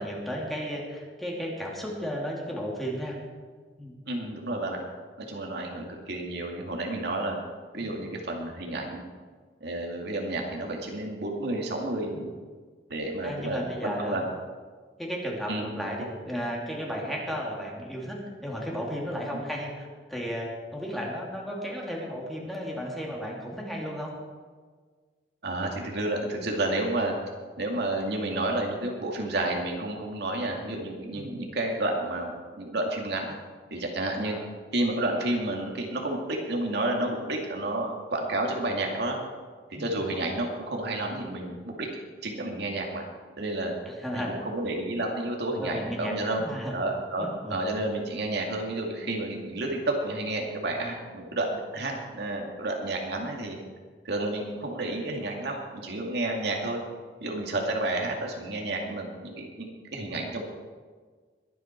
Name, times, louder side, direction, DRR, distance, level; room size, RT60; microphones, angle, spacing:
voice 1, 0.0-3.2 3.8-3.9 7.8-8.0 12.1-12.3 13.2-14.2 15.0-18.2 18.4-24.1 31.1-31.4 34.2-34.5 39.7-40.0 43.9-44.4 45.6-46.7 47.2-47.6, equal, ahead, -3 dB, 2.7 m, -34 dB
voice 2, 4.1-4.8 5.2-7.4 7.7-9.0 9.6-12.3 12.9-14.2 15.5-16.1 19.3-19.4 25.4-27.1 27.6-33.3 33.7-34.3 34.7-39.2 39.7-41.9 42.2-43.0 43.4-43.7 44.1-46.4 46.7-53.6 54.0-56.8 57.2-60.4, right 2 dB, 65° right, 0 dB, 2.3 m, -31 dB
22.0 x 9.2 x 4.5 m, 1.5 s
head